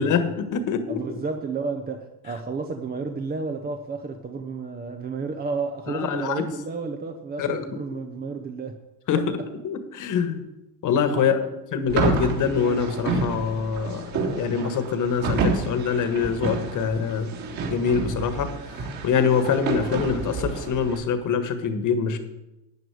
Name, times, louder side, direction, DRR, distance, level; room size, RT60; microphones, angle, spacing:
voice 1, 0.0-1.0 5.9-6.4 7.4-7.6 9.1-9.2 9.6-10.4 10.8-11.4 11.7-14.1 14.4-17.3 17.7-18.5 19.0-22.2, left 6 dB, 40° left, 9 dB, 1.6 m, -24 dB
voice 2, 0.9-8.8 9.1-9.3 11.2-11.5, right 4 dB, 20° right, 5 dB, 0.8 m, -31 dB
sound 1, 11.9-21.0, right 3 dB, 50° right, 3.7 m, -29 dB
12.5 x 9.1 x 4.8 m, 0.97 s
supercardioid pair, 115°, 45 cm